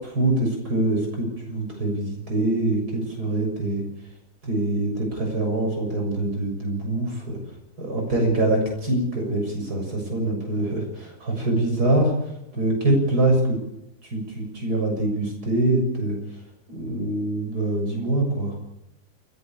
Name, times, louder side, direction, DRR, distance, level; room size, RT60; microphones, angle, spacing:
voice 1, 0.0-3.8 4.4-7.4 7.8-12.1 12.5-13.6 14.1-16.2 16.7-18.6, right 2 dB, 65° right, 1 dB, 7.5 m, -24 dB
30.0 x 10.5 x 8.7 m, 0.85 s
omnidirectional pair, 1.8 m